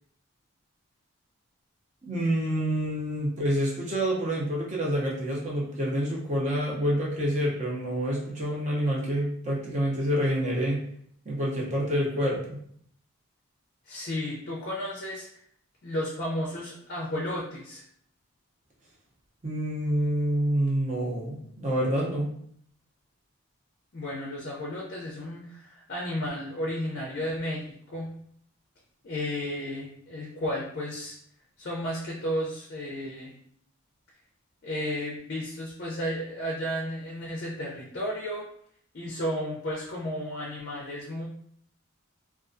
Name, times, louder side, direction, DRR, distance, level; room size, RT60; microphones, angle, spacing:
voice 1, 2.0-10.8 11.2-12.6 19.4-22.3, equal, 35° right, -4 dB, 0.6 m, -27 dB
voice 2, 13.9-15.3 15.8-17.8 23.9-28.1 29.0-31.2 31.6-33.3 34.6-38.4 38.9-41.3, equal, 50° left, -3 dB, 0.4 m, -33 dB
2.3 x 2.2 x 2.5 m, 0.66 s
head